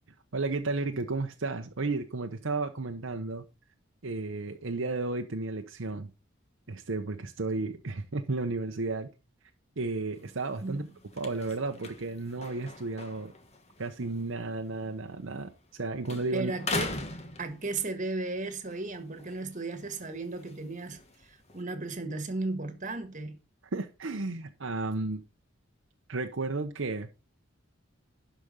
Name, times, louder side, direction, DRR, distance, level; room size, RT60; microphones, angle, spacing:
voice 1, 0.3-3.4 4.0-6.1 6.7-9.1 9.8-10.8 11.2-13.3 13.8-16.5 23.7-25.2 26.1-27.1, right 3 dB, 70° right, 0.9 m, -33 dB
sound 1, 10.1-15.8 16.0-18.1 18.5-21.6, left 2 dB, 30° left, 1.3 m, -41 dB
voice 2, 16.3-17.0 17.4-21.0 21.5-23.4, right 3 dB, 40° right, 1.6 m, -35 dB
11.5 x 5.2 x 5.4 m
head